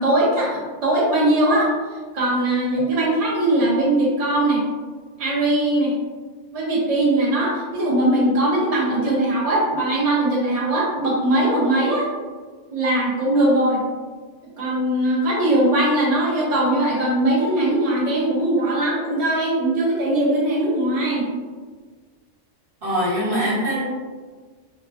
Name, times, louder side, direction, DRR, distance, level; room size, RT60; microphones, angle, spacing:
voice 1, 0.0-1.7 2.1-4.6 5.2-5.9 6.5-12.1 12.7-13.8 14.6-21.3, right 1 dB, 35° right, -6 dB, 0.8 m, -20 dB
voice 2, 22.8-23.8, equal, 50° right, -8 dB, 1.4 m, -22 dB
3.9 x 2.2 x 2.5 m, 1.5 s
omnidirectional pair, 1.2 m